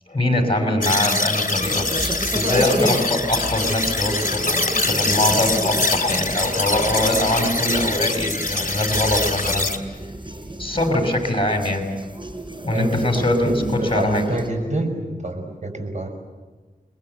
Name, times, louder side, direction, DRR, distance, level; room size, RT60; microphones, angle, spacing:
voice 1, 0.1-1.9 2.3-9.7 10.6-11.9 12.6-14.3, left 1 dB, 35° left, 3 dB, 5.5 m, -22 dB
sound 1, 0.8-9.8, left 2 dB, 60° left, 3.1 m, -24 dB
sound 2, 1.5-14.5, equal, 35° right, 4.5 m, -32 dB
voice 2, 12.7-16.1, right 1 dB, 50° right, 4 dB, 6.0 m, -26 dB
28.0 x 21.5 x 8.0 m, 1.3 s
wide cardioid pair, 50°, 15 cm